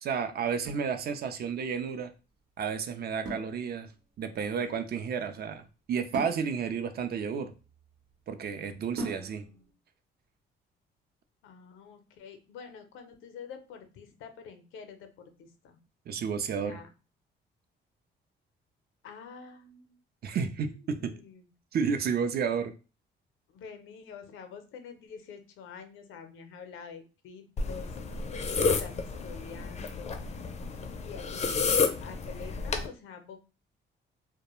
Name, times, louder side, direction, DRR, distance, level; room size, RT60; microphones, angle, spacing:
voice 1, 0.0-2.1 2.6-3.9 4.2-7.5 8.3-9.5 16.1-16.8 20.2-21.1 21.7-22.7, right 6 dB, 55° right, 8 dB, 0.5 m, -31 dB
sound 1, 1.5-1.6 3.2-4.2 6.1-8.1 9.0-9.7, right 3 dB, 75° right, 0.9 m, -42 dB
voice 2, 8.9-9.7 11.4-15.8 16.6-16.9 19.0-20.0 20.9-21.5 23.5-27.9 28.6-30.2 31.0-31.7 32.0-33.4, left 6 dB, 85° left, 7 dB, 0.6 m, -47 dB
sound 2, 27.6-32.9, left 4 dB, 35° left, 0.4 m, -31 dB
2.3 x 2.1 x 3.0 m, 0.33 s
cardioid pair, 90°, 20 cm